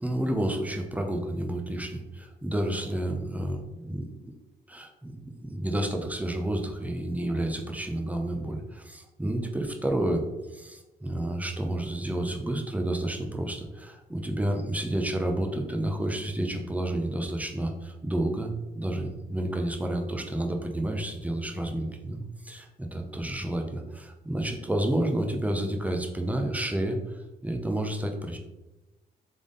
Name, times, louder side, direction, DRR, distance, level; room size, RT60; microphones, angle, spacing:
voice 1, 0.0-4.1 4.7-10.2 10.5-28.4, right 1 dB, 5° right, 3 dB, 0.7 m, -30 dB
3.6 x 3.5 x 3.8 m, 1.0 s
cardioid pair, 90°, 20 cm